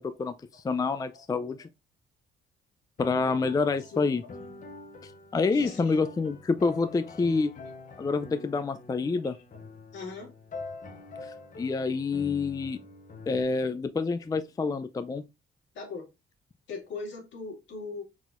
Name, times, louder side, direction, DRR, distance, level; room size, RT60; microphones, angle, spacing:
voice 1, 0.0-1.7 3.0-4.2 5.0-7.5 8.0-9.4 11.2-12.8 13.3-15.2, left 4 dB, 20° left, 0.4 m, -28 dB
sound 1, 3.0-13.4, left 3 dB, 40° left, 0.9 m, -45 dB
voice 2, 3.8-4.3 5.5-6.0 6.2-6.3 6.9-7.0 9.2-9.4 9.9-10.3 15.7-16.1 16.7-18.0, left 4 dB, 70° left, 1.9 m, -40 dB
4.3 x 4.0 x 2.5 m
cardioid pair, 90°, 20 cm